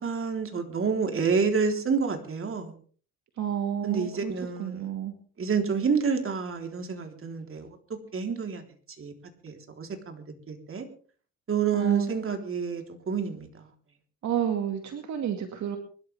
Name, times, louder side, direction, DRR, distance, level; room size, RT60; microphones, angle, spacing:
voice 1, 0.0-2.7 3.8-4.8 5.4-7.7 8.1-8.6 9.0-9.1 9.4-10.9 11.5-13.5, right 5 dB, 45° right, 4 dB, 3.9 m, -28 dB
voice 2, 3.4-4.3 4.6-5.1 11.7-12.1 14.2-15.8, right 9 dB, 65° right, 5 dB, 2.3 m, -30 dB
24.5 x 13.0 x 3.6 m, 0.42 s
cardioid pair, 90°, 30 cm